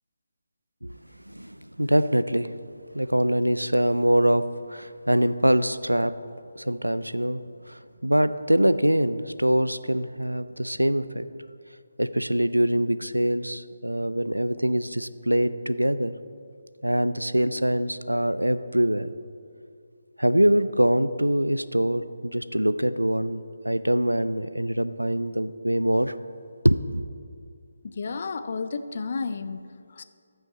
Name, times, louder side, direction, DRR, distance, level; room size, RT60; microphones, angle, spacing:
voice 1, 1.3-2.5 2.9-6.1 6.6-11.3 12.0-16.1 16.8-19.1 20.2-26.1 26.6-27.0, equal, 90° right, 14 dB, 0.3 m, -24 dB
voice 2, 27.8-30.0, left 4 dB, 45° left, 11 dB, 0.4 m, -32 dB
14.0 x 5.7 x 4.1 m, 2.3 s
figure-of-eight pair, 150°, 0 cm